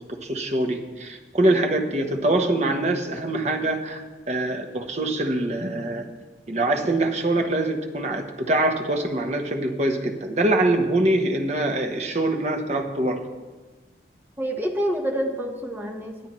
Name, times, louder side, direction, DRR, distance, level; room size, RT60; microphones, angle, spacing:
voice 1, 0.1-6.0 6.5-13.2, right 1 dB, 35° right, 4 dB, 1.0 m, -24 dB
voice 2, 14.4-16.3, equal, 10° right, 1 dB, 1.1 m, -27 dB
21.0 x 9.1 x 3.1 m, 1.3 s
head